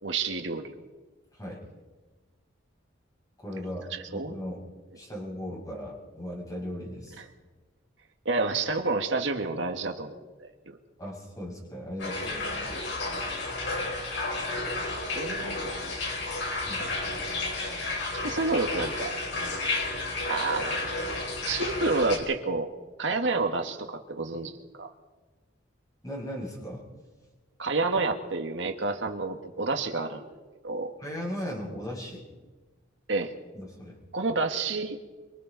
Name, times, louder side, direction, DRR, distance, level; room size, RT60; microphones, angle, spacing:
voice 1, 0.0-0.7 3.9-4.4 7.2-7.3 8.2-10.5 12.7-12.8 15.1-15.9 16.7-16.9 18.1-19.2 20.3-20.9 21.5-22.7 23.0-24.9 27.6-30.2 30.6-30.9 33.1-33.3 34.1-35.0, right 3 dB, 70° right, 4 dB, 1.8 m, -29 dB
voice 2, 3.4-4.6 4.9-7.2 11.0-12.8 16.6-16.9 26.0-26.9 31.0-32.3 33.5-34.0, equal, 20° left, -2 dB, 6.2 m, -37 dB
sound 1, 12.0-22.2, left 2 dB, 65° left, 4.8 m, -32 dB
25.5 x 25.0 x 4.1 m, 1.3 s
head